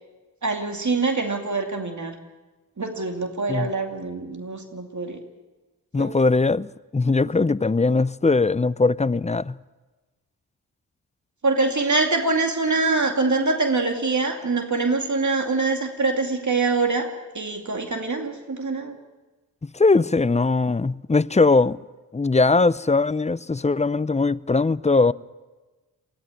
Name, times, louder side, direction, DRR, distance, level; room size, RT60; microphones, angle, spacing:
voice 1, 0.4-2.2 2.8-5.2 6.0-6.2 11.4-19.0, right 3 dB, 45° right, 2.4 m, -24 dB
voice 2, 5.9-6.7 6.9-9.6 19.6-21.8 22.1-25.1, left 3 dB, 15° left, 0.6 m, -20 dB
20.0 x 15.0 x 10.0 m
supercardioid pair, 40°, 40 cm